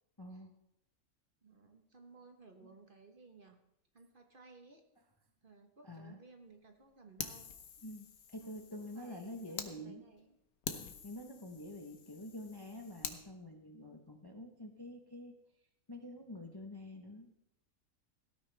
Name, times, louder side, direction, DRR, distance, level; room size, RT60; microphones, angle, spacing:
voice 1, 0.2-0.6 5.8-6.2 7.8-10.1 10.7-15.4 15.9-17.3, left 1 dB, 20° left, 4 dB, 0.8 m, -47 dB
voice 2, 1.4-3.6 3.9-4.8 5.4-7.5 8.4-10.4, right 3 dB, 40° right, 4 dB, 1.3 m, -59 dB
Fire, 7.2-9.7 10.2-10.3 10.6-13.2, left 7 dB, 80° left, 1.5 m, -46 dB
18.0 x 12.5 x 3.4 m, 0.80 s
omnidirectional pair, 1.5 m